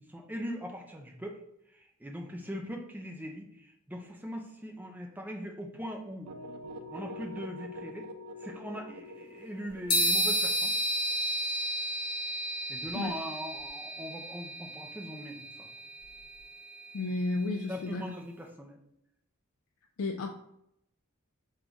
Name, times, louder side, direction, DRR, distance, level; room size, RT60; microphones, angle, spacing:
voice 1, 0.0-1.4 1.7-6.3 6.9-8.1 8.4-10.7 12.7-15.7 17.7-18.8, equal, 10° right, 1 dB, 0.4 m, -41 dB
sound 1, 6.3-12.1, left 1 dB, 85° right, 0.4 m, -45 dB
sound 2, 9.9-17.6, equal, 25° left, 0.9 m, -32 dB
voice 2, 16.9-18.1 20.0-20.3, left 2 dB, 60° left, 3 dB, 0.3 m, -32 dB
3.5 x 2.4 x 3.9 m, 0.78 s
head